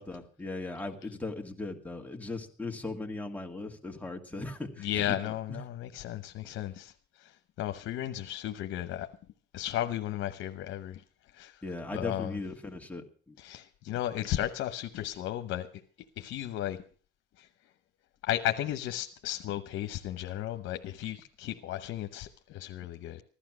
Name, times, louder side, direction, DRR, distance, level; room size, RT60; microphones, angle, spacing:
voice 1, 0.0-5.2 11.6-13.4, left 2 dB, 5° left, 2.3 m, -38 dB
voice 2, 4.8-9.1 9.5-11.0 11.3-11.6 11.9-12.4 13.4-15.7 16.2-16.8 17.4-17.7 18.2-23.2, left 12 dB, 85° left, 0.9 m, -34 dB
15.5 x 12.0 x 6.2 m
cardioid pair, 90°, 20 cm